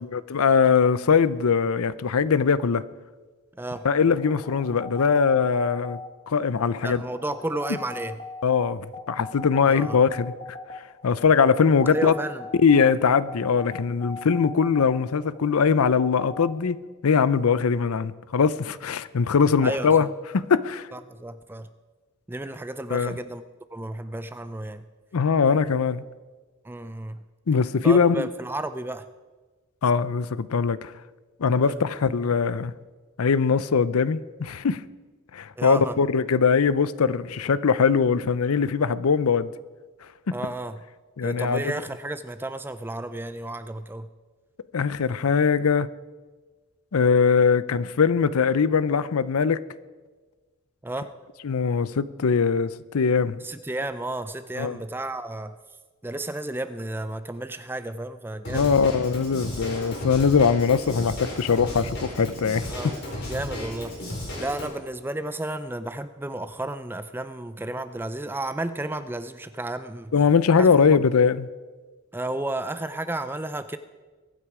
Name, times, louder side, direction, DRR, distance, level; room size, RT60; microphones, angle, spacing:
voice 1, 0.1-2.8 3.8-6.0 6.3-7.0 8.4-10.3 11.0-12.1 12.6-20.1 20.3-20.9 22.9-23.2 25.1-26.0 27.5-28.3 29.8-30.9 31.4-32.7 33.2-34.8 35.3-39.5 41.2-41.7 44.7-45.9 46.9-49.6 51.4-53.4 54.6-54.8 58.5-62.7 70.1-71.5, left 5 dB, 75° left, 17 dB, 0.5 m, -21 dB
voice 2, 3.5-3.9 6.8-8.2 9.7-10.0 11.9-12.5 19.6-20.0 20.9-21.7 22.3-23.4 23.7-24.9 26.6-27.2 27.8-29.1 31.6-31.8 35.6-36.0 40.3-40.8 41.2-44.1 50.8-51.1 53.4-55.6 56.0-58.7 62.7-63.0 63.3-64.0 64.4-70.1 70.6-70.7 72.1-73.8, right 1 dB, 10° right, 12 dB, 0.4 m, -32 dB
sound 1, 3.8-16.5, left 3 dB, 25° left, 1.2 m, -41 dB
Drum kit / Drum, 58.4-64.7, left 1 dB, 50° left, 4.7 m, -34 dB
23.0 x 9.1 x 4.8 m, 1.3 s
head